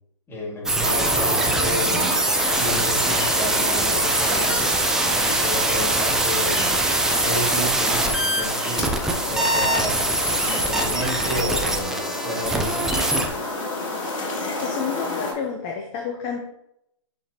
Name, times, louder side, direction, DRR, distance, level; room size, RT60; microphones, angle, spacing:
voice 1, 0.3-2.2 2.5-4.6 5.1-6.8 7.2-9.0 9.2-10.1 10.4-12.9, equal, 15° left, -4 dB, 2.1 m, -31 dB
sound 1, 0.7-13.3, right 2 dB, 5° right, 0.5 m, -22 dB
sound 2, 0.8-15.3, left 2 dB, 80° left, 2.5 m, -31 dB
voice 2, 14.6-16.4, left 6 dB, 30° left, 1 dB, 0.8 m, -29 dB
8.1 x 4.3 x 2.9 m, 0.79 s
hypercardioid pair, 140°, 16 cm